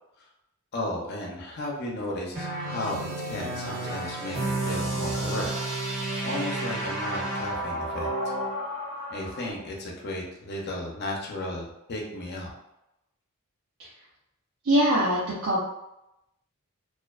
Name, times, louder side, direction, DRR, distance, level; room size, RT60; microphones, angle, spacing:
voice 1, 0.7-5.5 6.2-8.1 9.1-12.5, left 1 dB, 50° left, -1 dB, 0.6 m, -34 dB
sound 1, 1.3-1.4 3.8-9.5, left 2 dB, 25° right, 0.5 m, -39 dB
sound 2, 2.3-8.5, right 2 dB, 45° right, 1.2 m, -31 dB
voice 2, 14.6-15.6, equal, 70° right, -7 dB, 0.5 m, -23 dB
2.4 x 2.2 x 2.3 m, 0.88 s
head